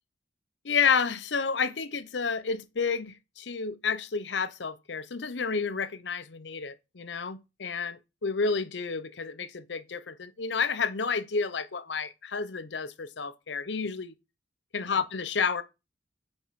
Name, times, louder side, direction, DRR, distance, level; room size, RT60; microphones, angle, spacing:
voice 1, 0.6-14.1 14.7-15.6, left 5 dB, 70° left, 0.8 m, -30 dB
7.1 x 5.4 x 5.7 m
head